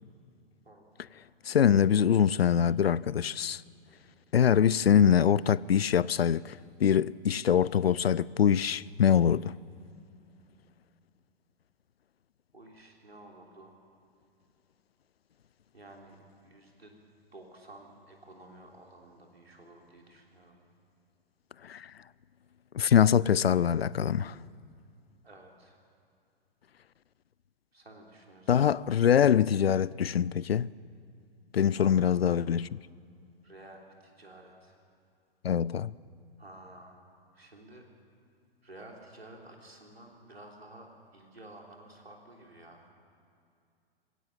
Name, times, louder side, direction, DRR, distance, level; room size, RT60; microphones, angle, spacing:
voice 1, 0.6-1.1 12.5-13.7 15.7-16.9 17.3-20.6 25.2-25.8 27.7-28.6 31.8-32.1 33.4-34.8 36.4-37.0 37.3-37.9 38.6-42.8, right 1 dB, 90° right, 3.5 m, -52 dB
voice 2, 1.5-3.6 4.3-9.6 21.6-21.9 22.7-24.4 28.5-30.7 31.5-32.8 35.4-35.9, left 8 dB, 80° left, 0.5 m, -24 dB
21.5 x 16.5 x 7.6 m
figure-of-eight pair, 110°, 30 cm